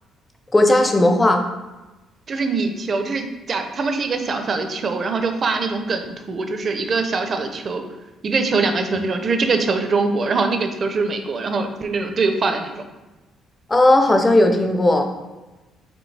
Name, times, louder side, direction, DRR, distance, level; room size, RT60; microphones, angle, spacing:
voice 1, 0.5-1.4 13.7-15.1, left 1 dB, 15° left, 4 dB, 0.5 m, -15 dB
voice 2, 2.3-7.8 8.2-12.8, right 4 dB, 35° right, 6 dB, 0.5 m, -23 dB
5.2 x 3.1 x 3.2 m, 1.1 s
cardioid pair, 130°, 0 cm